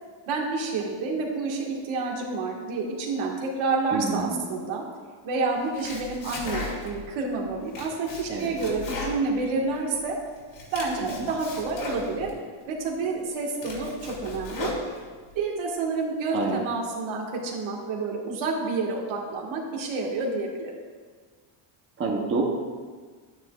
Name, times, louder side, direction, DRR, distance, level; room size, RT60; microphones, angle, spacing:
voice 1, 0.3-4.8 5.2-10.2 10.7-12.3 12.7-14.7 15.4-20.7, right 3 dB, 70° right, -1 dB, 1.8 m, -29 dB
voice 2, 3.9-4.5 8.3-8.5 11.1-11.3 16.3-16.6 22.0-22.4, right 4 dB, 25° right, -1 dB, 0.9 m, -27 dB
Domestic sounds home sounds, 5.6-7.1 7.5-10.0 10.4-12.3 12.9-13.0 13.4-15.3, left 2 dB, 65° left, 2.8 m, -36 dB
11.0 x 9.6 x 2.4 m, 1.5 s
cardioid pair, 155°, 49 cm